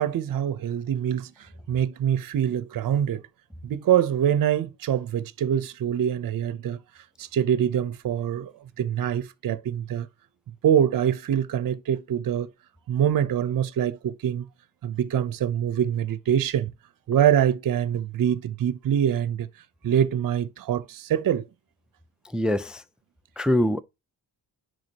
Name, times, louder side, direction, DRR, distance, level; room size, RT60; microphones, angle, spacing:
voice 1, 0.0-3.2 3.6-6.8 7.2-8.5 8.8-10.1 10.5-12.5 12.9-14.4 14.8-16.7 17.1-19.5 19.8-21.4, right 9 dB, 55° right, 0.7 m, -24 dB
voice 2, 22.3-22.8 23.4-23.8, left 1 dB, ahead, 0.4 m, -23 dB
10.5 x 3.8 x 2.8 m
cardioid pair, 115°, 41 cm